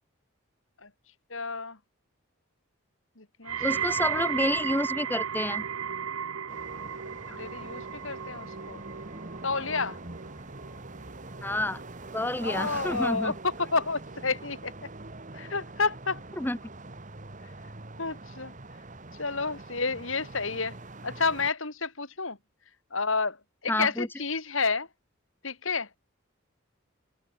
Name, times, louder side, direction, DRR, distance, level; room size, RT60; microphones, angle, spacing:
voice 1, 1.3-1.8 3.2-4.2 7.3-8.8 9.4-10.0 12.4-14.7 15.3-16.2 18.0-18.5 19.2-20.8 21.0-22.4 22.9-23.4 23.6-24.9 25.4-25.9, left 4 dB, 65° left, 3.1 m, -30 dB
sound 1, 3.5-14.6 14.9-15.4 16.1-16.2, right 8 dB, 80° right, 0.8 m, -35 dB
voice 2, 3.6-5.7 11.4-11.8 12.1-13.3 16.4-16.6 23.7-24.1, left 1 dB, 10° left, 0.9 m, -29 dB
sound 2, 6.5-21.5, right 2 dB, 35° right, 1.6 m, -43 dB
head